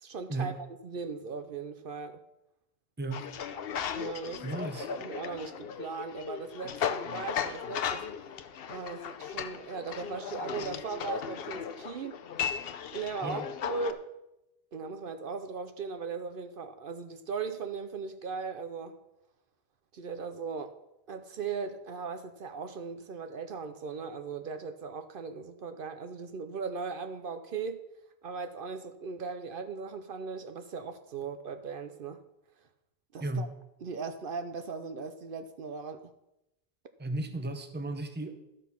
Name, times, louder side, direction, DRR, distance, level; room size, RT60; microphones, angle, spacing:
voice 1, 0.0-0.5 0.8-2.2 3.9-4.5 4.9-8.1 8.7-12.2 12.9-14.1 14.7-19.0 19.9-20.8 21.1-27.8 28.2-32.2 33.1-33.5 33.8-36.1, right 5 dB, 60° right, 0.8 m, -38 dB
voice 2, 3.0-3.3 4.4-4.9 13.2-13.5 33.2-33.5 37.0-38.4, right 2 dB, 10° right, 0.7 m, -34 dB
sound 1, 3.1-13.9, left 8 dB, 70° left, 0.9 m, -36 dB
12.5 x 6.5 x 5.7 m
omnidirectional pair, 1.0 m